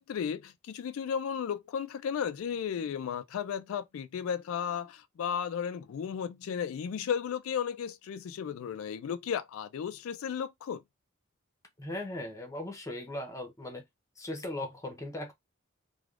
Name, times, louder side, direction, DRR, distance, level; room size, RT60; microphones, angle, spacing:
voice 1, 0.0-10.8, left 7 dB, 85° left, 0.3 m, -34 dB
voice 2, 11.8-13.8 14.2-15.3, left 1 dB, 15° left, 0.7 m, -38 dB
3.3 x 2.2 x 2.4 m
head